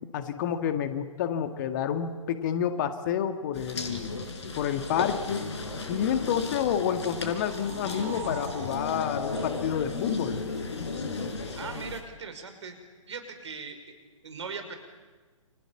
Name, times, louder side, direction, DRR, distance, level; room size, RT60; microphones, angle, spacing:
voice 1, 0.1-4.1 4.6-5.5 5.9-10.4, left 9 dB, 35° left, 8 dB, 2.0 m, -29 dB
sound 1, 3.5-12.0, left 3 dB, 55° left, 4.9 m, -35 dB
sound 2, 7.0-10.5, right 5 dB, 20° right, 5.7 m, -44 dB
voice 2, 11.5-12.8 13.1-13.8 14.2-14.8, right 5 dB, 60° right, 7 dB, 5.6 m, -39 dB
29.5 x 27.0 x 7.4 m, 1.4 s
figure-of-eight pair, 125°, 17 cm